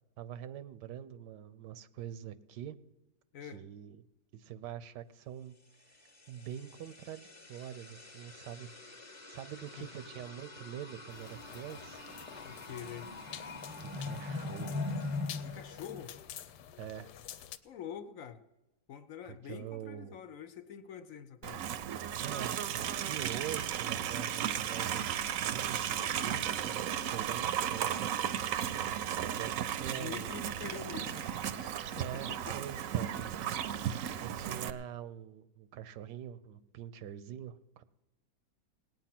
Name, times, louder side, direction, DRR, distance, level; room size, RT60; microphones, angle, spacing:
voice 1, 0.2-2.8 3.4-4.0 4.3-5.5 5.9-6.0 6.3-8.7 9.3-12.0 13.7-14.8 16.8-17.1 19.3-20.2 22.2-26.7 27.1-28.7 29.2-30.5 32.0-33.1 34.2-37.8, right 10 dB, 90° right, 15 dB, 1.3 m, -44 dB
voice 2, 3.3-3.7 9.8-9.9 12.4-13.1 15.4-16.2 17.6-18.4 18.9-21.7 25.9-26.4 29.9-31.3 31.5-32.6, left 8 dB, 65° left, 10 dB, 0.9 m, -46 dB
sound 1, 5.9-16.6, left 3 dB, 10° left, 0.9 m, -43 dB
sound 2, 11.1-17.6, left 10 dB, 85° left, 1.3 m, -49 dB
Livestock farm animals working animals, 21.4-34.7, right 9 dB, 65° right, 0.9 m, -35 dB
18.5 x 9.2 x 5.9 m, 0.98 s
omnidirectional pair, 1.8 m